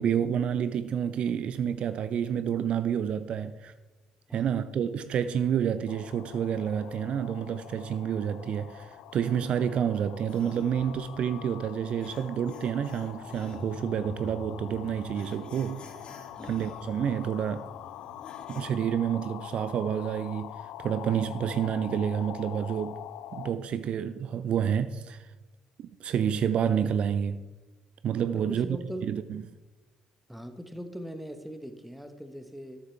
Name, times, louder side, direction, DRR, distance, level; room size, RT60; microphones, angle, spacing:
voice 1, 0.0-3.7 4.3-15.9 16.4-17.6 18.5-20.5 20.8-23.0 23.3-25.3 25.8-27.4 28.0-28.8 29.0-29.4, right 8 dB, 50° right, 0.5 m, -29 dB
voice 2, 4.3-4.7 16.3-16.6 28.3-29.1 30.3-32.8, equal, ahead, 1.4 m, -41 dB
sound 1, 5.9-23.5, left 13 dB, 60° left, 0.4 m, -45 dB
sound 2, 10.3-18.6, left 2 dB, 40° left, 2.2 m, -48 dB
13.0 x 13.0 x 3.4 m
figure-of-eight pair, 50°, 3 cm